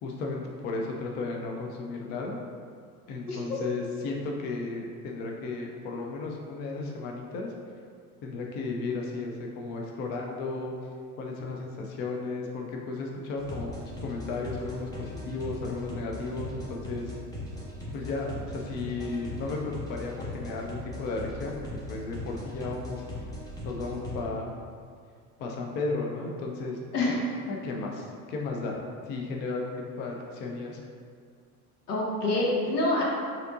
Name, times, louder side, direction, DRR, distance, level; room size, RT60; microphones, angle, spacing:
voice 1, 0.0-2.4 3.1-7.5 8.2-10.7 11.2-17.1 17.9-21.6 21.9-23.0 23.6-24.5 25.4-27.2 27.5-30.8, left 3 dB, 25° left, 0 dB, 0.4 m, -34 dB
sound 1, 13.4-24.2, left 1 dB, 10° left, 1.1 m, -39 dB
voice 2, 26.9-27.4 31.9-33.0, left 1 dB, 70° left, -3 dB, 1.1 m, -26 dB
6.4 x 2.8 x 2.5 m, 2.1 s
figure-of-eight pair, 70°, 47 cm